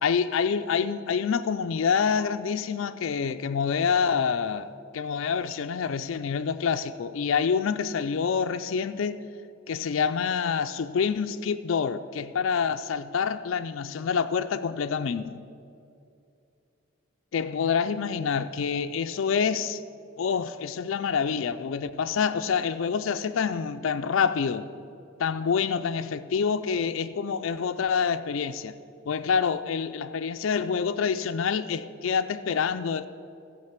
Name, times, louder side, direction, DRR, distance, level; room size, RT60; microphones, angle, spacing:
voice 1, 0.0-4.7 4.9-9.2 9.7-15.4 17.3-19.8 20.2-24.7 25.2-28.7 29.1-33.1, left 6 dB, 70° left, 0.4 m, -27 dB
14.0 x 5.1 x 8.1 m
head